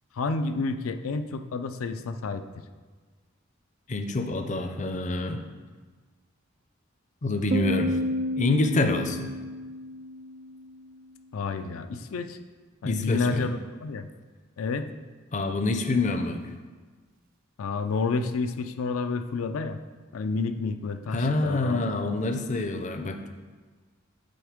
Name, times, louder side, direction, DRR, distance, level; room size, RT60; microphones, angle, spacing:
voice 1, 0.1-2.6 11.3-12.4 12.8-14.1 14.6-14.9 17.6-19.8 20.1-21.8 22.1-22.2, left 4 dB, 90° left, 9 dB, 0.4 m, -30 dB
voice 2, 3.9-5.4 7.2-8.0 8.4-9.3 12.8-13.5 15.3-16.4 21.1-23.3, left 2 dB, 35° left, 6 dB, 0.5 m, -26 dB
Piano, 7.5-10.9, equal, 45° right, 0.5 m, -31 dB
7.8 x 3.5 x 5.0 m, 1.4 s
head